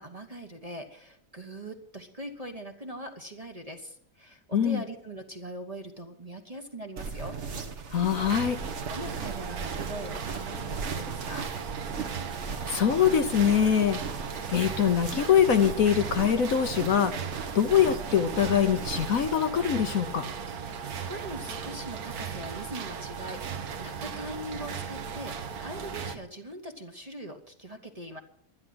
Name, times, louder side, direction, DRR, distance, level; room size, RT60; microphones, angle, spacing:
voice 1, 0.0-7.4 8.9-11.5 20.6-28.2, right 1 dB, 25° right, 4 dB, 1.1 m, -41 dB
sound 1, 7.0-19.3, right 5 dB, 45° right, 1.4 m, -38 dB
voice 2, 7.9-8.6 12.7-14.0 14.5-17.1 17.5-20.3, left 8 dB, 60° left, 8 dB, 1.2 m, -23 dB
sound 2, 8.1-26.2, right 6 dB, 65° right, 1.6 m, -37 dB
11.5 x 11.5 x 7.9 m, 0.70 s
omnidirectional pair, 1.8 m